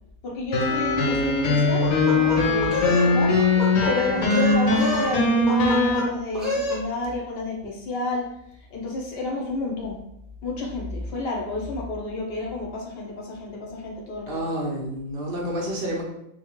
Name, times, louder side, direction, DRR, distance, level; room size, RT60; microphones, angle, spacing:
voice 1, 0.2-3.4 3.9-8.3 8.7-10.0 10.4-14.4, left 2 dB, 60° left, -1 dB, 0.7 m, -30 dB
sound 1, 0.5-6.0, left 3 dB, 90° left, 1.0 m, -21 dB
sound 2, 1.8-3.1 3.4-3.9 4.2-5.1 5.5-6.1 6.3-6.8, left 2 dB, ahead, 0.3 m, -27 dB
voice 2, 14.3-16.0, right 1 dB, 65° right, -1 dB, 0.6 m, -29 dB
2.9 x 2.0 x 2.9 m, 0.78 s
omnidirectional pair, 1.5 m